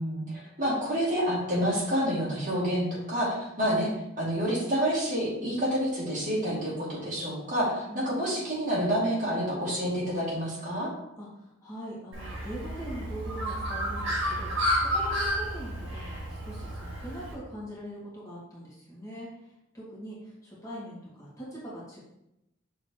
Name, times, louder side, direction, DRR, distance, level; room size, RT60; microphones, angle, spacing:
voice 1, 0.0-3.9 4.2-10.9, equal, 40° right, -6 dB, 2.1 m, -28 dB
voice 2, 7.9-8.3 11.2-22.0, equal, 15° left, -7 dB, 1.8 m, -42 dB
Bird, 12.1-17.3, equal, 70° right, 2.0 m, -31 dB
6.3 x 3.3 x 4.5 m, 0.86 s
head